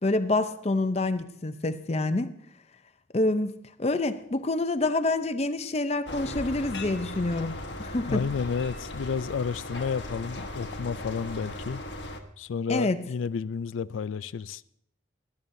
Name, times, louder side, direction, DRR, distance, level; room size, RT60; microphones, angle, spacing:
voice 1, 0.0-2.3 3.1-3.5 3.8-8.2 12.7-13.0, left 2 dB, 35° left, 0.6 m, -27 dB
sound 1, 6.1-12.2, left 1 dB, 70° left, 1.2 m, -38 dB
voice 2, 8.1-11.8 12.4-14.6, left 6 dB, 85° left, 0.4 m, -31 dB
20.0 x 12.5 x 2.7 m
head